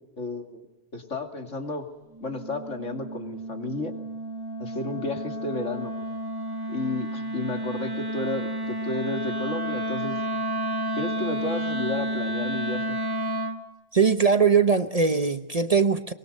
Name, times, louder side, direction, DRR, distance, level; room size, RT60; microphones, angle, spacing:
voice 1, 0.2-0.7 0.9-1.9 2.2-3.9 4.6-5.9 6.7-10.2 11.0-13.0, left 2 dB, 80° left, 2.9 m, -32 dB
Wind instrument woodwind instrument, 2.1-13.6, right 1 dB, 20° right, 1.5 m, -31 dB
voice 2, 13.9-16.1, right 5 dB, 35° right, 0.8 m, -21 dB
23.5 x 21.5 x 6.6 m
omnidirectional pair, 1.3 m